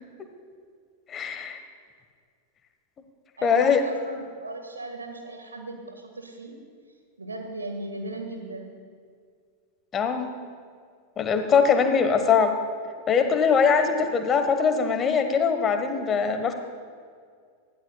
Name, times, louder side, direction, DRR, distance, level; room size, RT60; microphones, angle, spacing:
voice 1, 1.1-1.6 3.4-3.8 9.9-10.3 11.2-12.5 13.1-16.5, left 6 dB, 25° left, 7 dB, 1.2 m, -22 dB
voice 2, 3.4-6.6 7.2-8.8 13.7-14.1, right 2 dB, 75° right, 4 dB, 1.6 m, -38 dB
20.0 x 15.0 x 2.3 m, 2.1 s
figure-of-eight pair, 90°, 0 cm